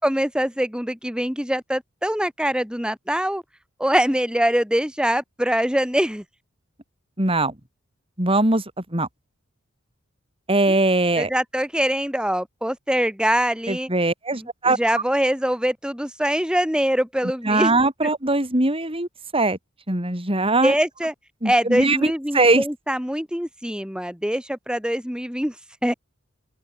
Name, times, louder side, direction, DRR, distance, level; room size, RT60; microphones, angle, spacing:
voice 1, 0.0-3.4 3.8-6.2 10.7-10.8 11.2-13.9 14.3-17.7 20.6-21.1 21.4-25.5 25.8-25.9, equal, 5° right, 7.7 m, -23 dB
voice 2, 7.2-7.5 8.2-8.6 8.9-9.1 10.5-11.3 13.7-14.8 17.4-19.1 19.3-19.6 19.9-20.7 21.4-22.6, right 2 dB, 25° right, 5.1 m, -21 dB
open air
head